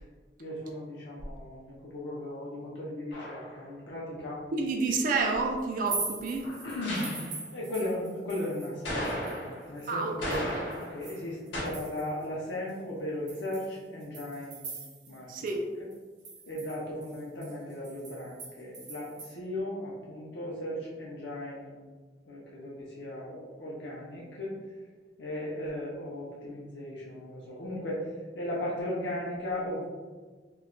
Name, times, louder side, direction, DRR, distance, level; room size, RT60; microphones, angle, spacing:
voice 1, 0.4-4.4 6.4-7.3 7.5-10.5 10.8-14.7 15.1-15.3 15.8-15.9 16.5-21.7 22.3-24.6 25.2-28.1 28.3-29.8, left 1 dB, 65° left, -6 dB, 0.6 m, -36 dB
sound 1, 3.1-3.6 6.8-7.4 8.8-9.7 10.2-11.1 11.5-11.6, equal, 90° left, 0.9 m, -35 dB
voice 2, 4.6-6.5 9.9-10.6 15.3-15.6, right 3 dB, 45° right, 2 dB, 0.3 m, -30 dB
sound 2, 5.7-8.8 9.0-12.2 12.7-12.8 13.3-15.2 15.5-15.6 15.9-19.3, right 4 dB, 70° right, 0.7 m, -42 dB
2.2 x 2.1 x 3.6 m, 1.4 s
head